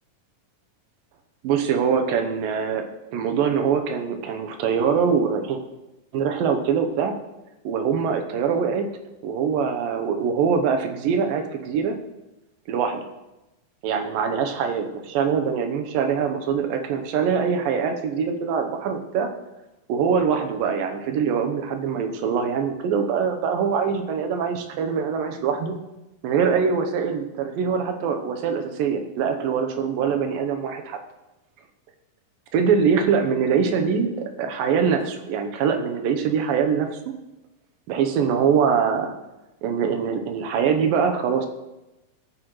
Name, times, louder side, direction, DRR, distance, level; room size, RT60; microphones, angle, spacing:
voice 1, 1.4-2.8 3.1-5.6 6.1-7.1 7.6-8.9 9.2-12.0 12.7-13.0 13.8-19.3 19.9-25.8 26.2-31.0 32.5-36.9 37.9-39.1 39.6-41.5, right 6 dB, 85° right, 5 dB, 2.7 m, -23 dB
15.5 x 9.0 x 3.1 m, 0.99 s
omnidirectional pair, 3.9 m